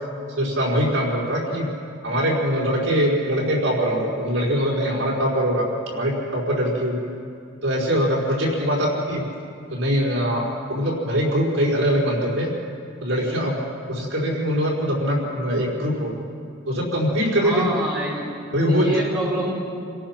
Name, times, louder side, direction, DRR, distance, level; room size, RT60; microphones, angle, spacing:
voice 1, 0.4-1.6 2.0-5.7 5.9-7.1 7.6-9.2 9.7-10.4 10.7-12.5 13.0-13.5 13.9-16.1 16.7-17.7 18.5-19.0, equal, 65° right, -4 dB, 5.0 m, -22 dB
voice 2, 17.4-18.2 18.6-19.5, right 1 dB, ahead, -6 dB, 5.1 m, -26 dB
28.0 x 18.0 x 6.0 m, 2.4 s
head